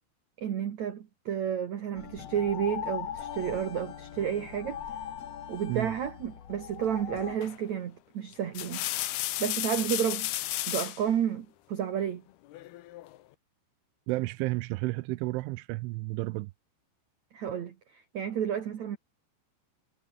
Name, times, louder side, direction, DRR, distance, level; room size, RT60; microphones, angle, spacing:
voice 1, 0.4-4.8 5.5-8.9 9.4-10.3 10.7-12.2 17.3-19.0, right 9 dB, 65° right, 1.8 m, -31 dB
sound 1, 1.9-7.4, left 9 dB, 90° left, 1.4 m, -40 dB
sound 2, 7.4-7.7 8.3-11.0 12.5-13.2, left 16 dB, 70° left, 2.5 m, -33 dB
voice 2, 14.1-16.5, right 21 dB, 85° right, 2.9 m, -32 dB
omnidirectional pair, 5.8 m